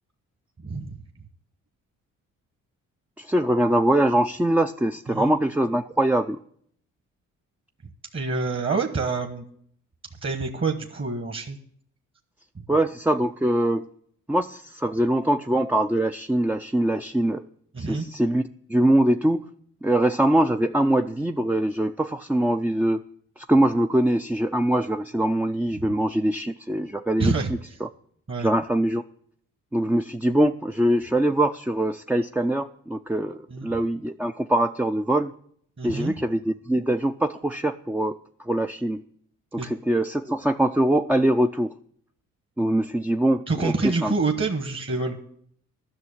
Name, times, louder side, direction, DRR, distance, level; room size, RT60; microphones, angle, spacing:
voice 1, 0.6-1.0 5.1-5.3 8.1-9.4 10.2-11.6 12.6-12.7 17.7-18.1 25.7-25.9 27.2-27.5 28.3-28.5 33.5-33.7 35.8-36.1 39.6-39.7 43.5-45.2, right 3 dB, 35° right, 6 dB, 1.3 m, -27 dB
voice 2, 3.2-6.4 12.7-13.9 14.3-17.4 17.8-18.4 18.7-19.4 19.8-23.0 23.4-27.3 27.8-27.9 28.4-29.0 29.7-35.3 35.8-39.0 39.5-41.7 42.6-44.1, right 1 dB, 5° right, 6 dB, 0.4 m, -23 dB
11.5 x 6.3 x 9.0 m, 0.66 s
hypercardioid pair, 50°, 38 cm